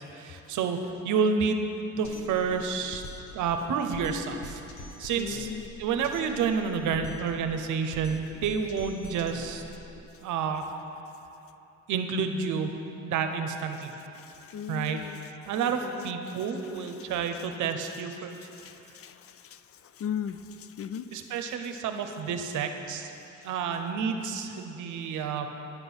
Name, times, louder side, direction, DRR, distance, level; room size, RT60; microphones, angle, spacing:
voice 1, 0.1-0.8 1.0-1.7 2.0-3.0 3.3-4.6 5.0-5.5 5.8-9.6 10.2-10.6 11.9-12.7 13.0-13.9 14.7-15.0 15.5-18.4 21.1-23.1 23.4-25.5, right 6 dB, 80° right, 6 dB, 0.8 m, -29 dB
Drum kit, 2.0-10.0, left 1 dB, 70° left, 1.0 m, -44 dB
voice 2, 5.2-5.7 14.1-15.2 15.6-17.5 18.2-21.1 21.5-21.7 23.4-23.5, left 8 dB, 50° left, 11 dB, 0.4 m, -39 dB
10.5 x 6.0 x 5.6 m, 3.0 s
cardioid pair, 90°, 30 cm